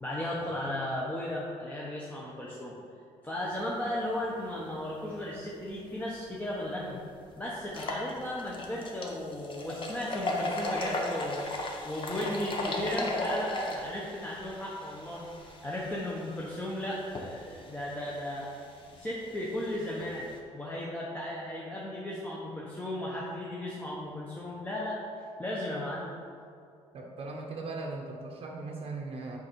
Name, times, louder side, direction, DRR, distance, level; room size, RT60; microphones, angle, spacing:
voice 1, 0.0-2.7 3.2-7.0 7.4-18.6 18.9-25.0 25.4-26.1, left 1 dB, 10° left, -5 dB, 1.0 m, -35 dB
sound 1, 6.4-6.5 6.9-7.0 7.6-20.4, left 1 dB, 45° left, 1.1 m, -37 dB
voice 2, 26.9-29.4, right 3 dB, 50° right, -1 dB, 0.9 m, -38 dB
6.3 x 5.4 x 4.6 m, 2.5 s
cardioid pair, 95°, 12 cm